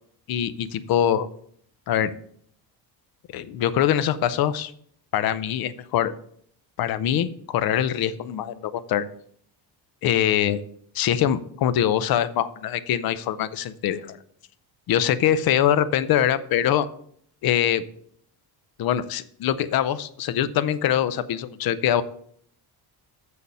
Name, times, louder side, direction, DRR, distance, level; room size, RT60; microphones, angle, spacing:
voice 1, 0.3-1.3 1.9-2.1 3.3-4.7 5.1-6.1 6.8-9.1 10.0-10.6 10.9-14.2 14.9-16.9 17.4-17.8 18.8-22.0, left 10 dB, 60° left, 14 dB, 0.7 m, -23 dB
6.9 x 6.4 x 5.5 m, 0.64 s
cardioid pair, 150°, 42 cm